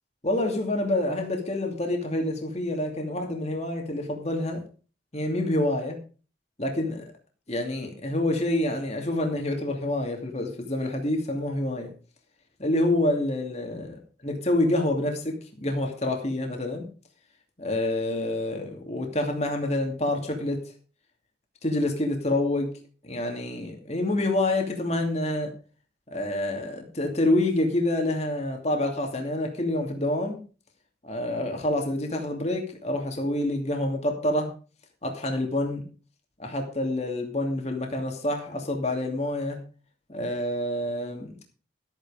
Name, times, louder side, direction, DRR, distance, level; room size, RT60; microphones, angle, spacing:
voice 1, 0.2-4.6 5.1-6.0 6.6-7.1 7.5-11.9 12.6-16.9 17.6-20.6 21.6-22.7 23.0-25.5 26.1-30.4 31.0-34.5 35.0-35.8 36.4-39.6 40.1-41.4, left 1 dB, 35° left, 2 dB, 2.6 m, -27 dB
14.0 x 9.0 x 5.0 m, 0.37 s
head